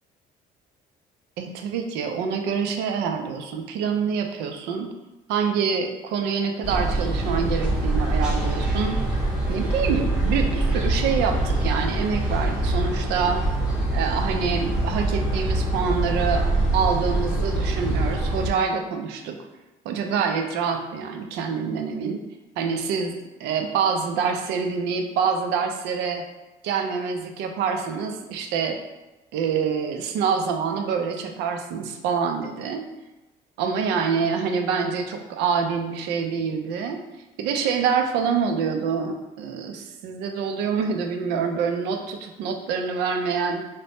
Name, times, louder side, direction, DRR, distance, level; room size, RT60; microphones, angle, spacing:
voice 1, 1.4-4.9 5.3-9.0 9.5-13.4 13.9-19.4 19.9-22.2 22.6-26.2 26.6-28.8 29.3-32.8 33.6-37.0 37.4-43.6, right 6 dB, 90° right, 5 dB, 0.4 m, -26 dB
sound 1, 6.6-18.5, right 2 dB, 5° right, 0.7 m, -24 dB
2.6 x 2.0 x 3.3 m, 1.0 s
cardioid pair, 110°, 17 cm